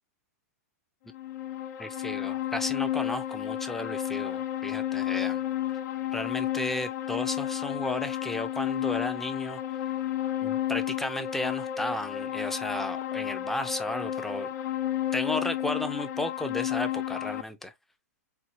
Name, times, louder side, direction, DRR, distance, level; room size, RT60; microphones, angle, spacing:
sound 1, 1.1-17.4, left 12 dB, 70° left, 0.7 m, -32 dB
voice 1, 1.8-5.4 6.1-9.6 10.4-14.5 15.1-17.7, left 1 dB, 5° left, 0.5 m, -34 dB
4.4 x 2.3 x 2.7 m
hypercardioid pair, 135°, 9 cm